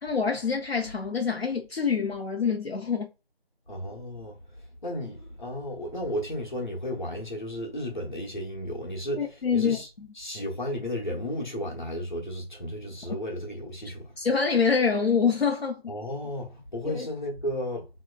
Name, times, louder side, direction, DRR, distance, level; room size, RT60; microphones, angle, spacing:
voice 1, 0.0-3.1 9.2-10.1 14.2-15.8 16.9-17.1, left 5 dB, 75° left, 0.6 m, -26 dB
voice 2, 3.7-4.4 4.8-9.9 10.1-14.1 15.9-17.9, equal, 50° left, 1.1 m, -33 dB
3.3 x 2.9 x 2.2 m
figure-of-eight pair, 175°, 31 cm